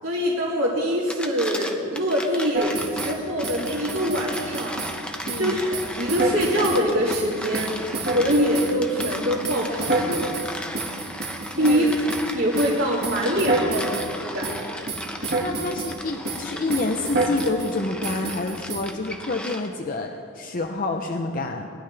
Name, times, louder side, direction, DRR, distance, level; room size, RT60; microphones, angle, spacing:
voice 1, 0.0-10.4 11.6-11.9 12.3-14.9, equal, 80° right, -6 dB, 2.4 m, -24 dB
sound 1, 0.9-19.9, left 1 dB, 5° left, 0.7 m, -36 dB
sound 2, 2.5-3.2 3.4-5.0 5.3-5.5 5.7-6.8 7.1-8.7 9.0-12.3 12.6-12.8 13.0-14.1 14.4-14.6 14.9-16.0 16.3-16.4 16.7-17.7 18.0-18.8, right 2 dB, 50° right, 1.6 m, -28 dB
voice 2, 5.3-5.6 11.5-11.9 15.4-21.7, left 2 dB, 40° left, 3 dB, 0.6 m, -28 dB
21.0 x 11.5 x 3.3 m, 2.3 s
head